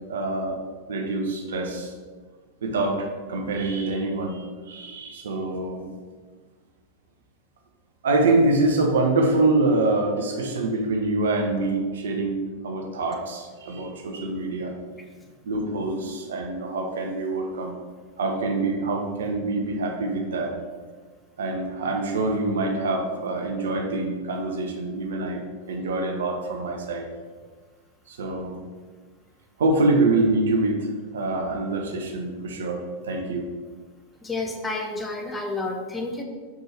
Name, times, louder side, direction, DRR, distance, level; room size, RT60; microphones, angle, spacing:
voice 1, 0.1-0.6 0.9-1.9 2.6-5.8 8.0-14.8 15.4-17.8 18.2-20.5 21.4-27.1 28.1-28.6 29.6-33.5, right 2 dB, 65° right, 3 dB, 1.0 m, -25 dB
voice 2, 34.2-36.2, left 2 dB, 10° left, 1 dB, 0.9 m, -30 dB
6.6 x 4.8 x 4.3 m, 1.4 s
figure-of-eight pair, 90°, 0 cm